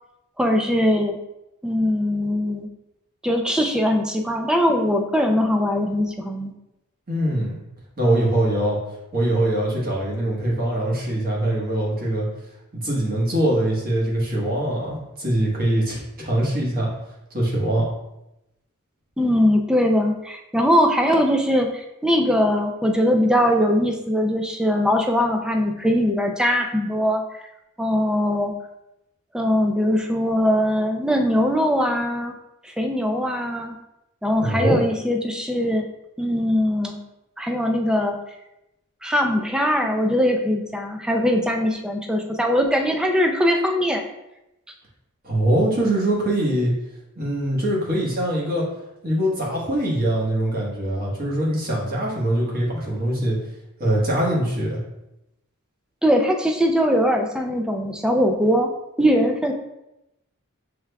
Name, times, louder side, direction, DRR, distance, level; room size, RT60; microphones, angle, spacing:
voice 1, 0.4-1.2 1.6-2.7 3.2-6.5 19.2-27.2 27.8-28.5 29.3-32.4 32.6-33.8 34.2-35.9 36.2-37.0 37.4-38.2 39.0-44.0 56.0-58.7 59.0-59.5, equal, 5° right, 3 dB, 0.4 m, -21 dB
voice 2, 7.1-7.6 8.0-8.8 9.1-12.3 12.8-16.9 17.3-17.9 34.4-34.8 45.2-46.7 47.2-48.6 49.0-53.4 53.8-54.8, right 1 dB, 40° right, -4 dB, 1.3 m, -22 dB
5.9 x 3.3 x 2.3 m, 0.89 s
head